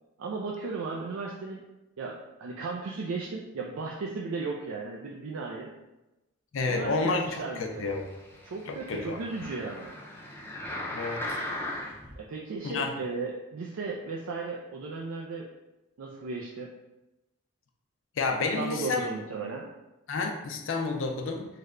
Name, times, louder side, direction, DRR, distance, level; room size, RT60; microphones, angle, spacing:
voice 1, 0.2-1.6 2.0-5.7 6.7-7.9 8.4-10.0 12.2-15.5 16.0-16.7 18.6-19.7, right 4 dB, 80° right, -2 dB, 0.4 m, -35 dB
voice 2, 6.5-7.2 7.6-8.0 8.7-9.2 10.9-11.2 12.6-12.9 18.2-19.1 20.1-21.5, left 4 dB, 65° left, 3 dB, 0.5 m, -30 dB
sound 1, 7.6-12.1 12.7-12.8, left 1 dB, 10° left, 0.5 m, -38 dB
3.3 x 2.1 x 3.6 m, 1.0 s
head